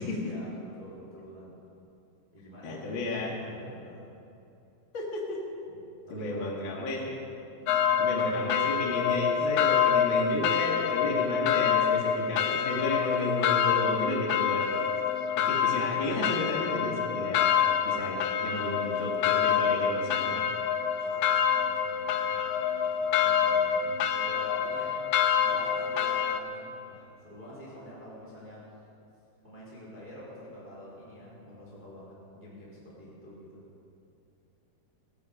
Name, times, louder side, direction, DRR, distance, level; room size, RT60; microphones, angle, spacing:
voice 1, 0.2-1.5 2.3-2.9 3.2-4.2 5.6-5.8 6.1-6.6 7.1-7.2 7.6-8.2 21.0-22.6 23.2-25.0 25.3-28.7 29.4-33.6, equal, 10° right, -7 dB, 3.4 m, -48 dB
voice 2, 2.6-3.5 4.9-5.4 6.1-7.1 8.0-14.6 15.4-17.5 17.8-20.4, left 2 dB, 35° left, -2 dB, 2.4 m, -32 dB
sound 1, 7.7-26.4, left 8 dB, 85° left, 2.1 m, -27 dB
16.5 x 16.0 x 5.2 m, 2.7 s
omnidirectional pair, 4.7 m